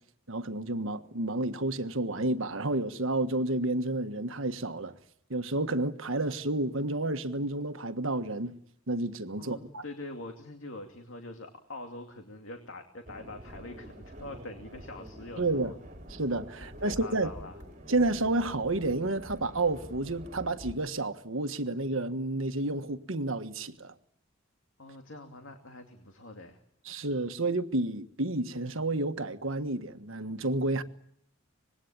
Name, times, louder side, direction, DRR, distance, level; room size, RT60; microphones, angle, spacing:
voice 1, 0.3-4.9 5.3-8.5 8.9-9.8 15.4-15.7 16.1-17.3 17.9-23.9 26.8-30.8, right 2 dB, 70° right, 1.5 m, -30 dB
voice 2, 9.4-15.7 16.8-17.6 24.8-26.6, left 2 dB, 70° left, 2.5 m, -44 dB
sound 1, 13.1-20.7, equal, 35° right, 4.4 m, -46 dB
25.5 x 21.0 x 8.8 m
head